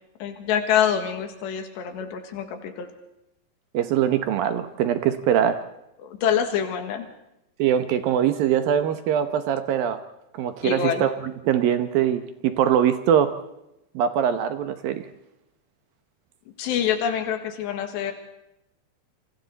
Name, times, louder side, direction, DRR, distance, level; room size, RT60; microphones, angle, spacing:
voice 1, 0.2-2.9 6.0-7.1 10.6-11.0 16.6-18.1, left 8 dB, 90° left, 6 dB, 4.0 m, -26 dB
voice 2, 3.7-5.6 7.6-10.0 10.3-13.3 13.9-15.1, right 9 dB, 70° right, 9 dB, 2.5 m, -22 dB
28.5 x 25.5 x 4.1 m, 0.86 s
omnidirectional pair, 4.8 m